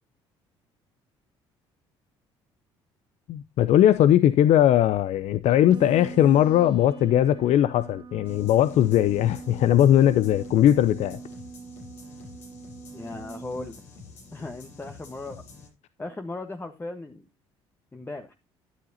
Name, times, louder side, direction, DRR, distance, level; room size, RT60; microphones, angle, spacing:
voice 1, 3.3-11.2, left 11 dB, 65° left, 0.6 m, -19 dB
sound 1, 5.7-13.7, right 5 dB, 40° right, 2.1 m, -42 dB
sound 2, 8.2-15.7, left 4 dB, 80° left, 7.5 m, -47 dB
voice 2, 12.9-13.8 14.3-15.4 16.0-17.3 17.9-18.3, left 2 dB, 15° left, 1.3 m, -37 dB
12.5 x 10.5 x 2.8 m
hypercardioid pair, 65°, 13 cm